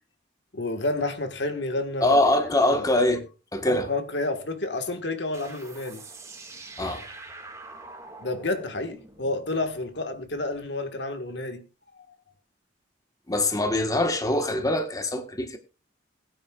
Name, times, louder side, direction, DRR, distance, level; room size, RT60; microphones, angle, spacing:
voice 1, 0.5-2.2 2.7-2.9 3.7-6.0 6.5-6.6 8.2-11.6, left 2 dB, 65° left, 1.6 m, -30 dB
voice 2, 2.0-3.3 3.5-3.9 6.8-7.0 13.3-15.6, left 1 dB, 20° left, 1.4 m, -23 dB
sound 1, 5.3-10.6, right 3 dB, 15° right, 2.0 m, -45 dB
21.0 x 9.4 x 2.4 m
head